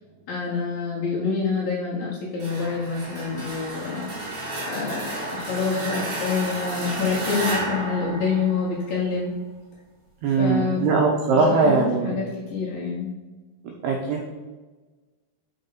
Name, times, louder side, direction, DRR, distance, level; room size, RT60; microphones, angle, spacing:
voice 1, 0.3-4.1 4.7-9.3 10.3-10.9 11.3-13.1, left 5 dB, 65° left, -5 dB, 2.4 m, -27 dB
sound 1, 2.4-9.1, right 1 dB, 35° right, 2.0 m, -32 dB
voice 2, 10.2-12.2 13.8-14.4, right 4 dB, 85° right, 0 dB, 2.2 m, -21 dB
6.3 x 5.3 x 5.9 m, 1.3 s
omnidirectional pair, 5.7 m